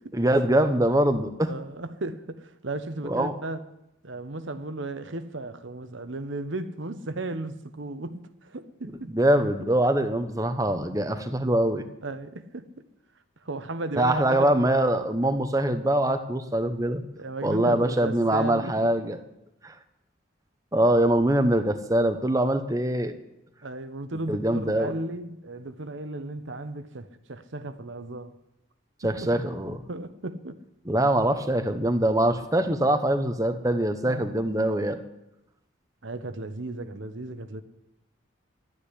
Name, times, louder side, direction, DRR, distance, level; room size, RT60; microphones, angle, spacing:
voice 1, 0.1-1.5 3.0-3.3 9.1-11.8 14.0-17.0 17.4-19.2 19.6-19.8 20.7-23.1 24.3-24.9 29.0-29.8 30.9-35.0, right 1 dB, 15° right, 0.8 m, -23 dB
voice 2, 1.5-3.6 4.0-9.2 12.0-12.7 13.4-14.8 17.2-18.9 23.6-28.3 29.0-29.3 29.9-30.6 34.0-34.3 36.0-37.6, right 2 dB, 70° right, 1.0 m, -35 dB
12.0 x 9.8 x 10.0 m
head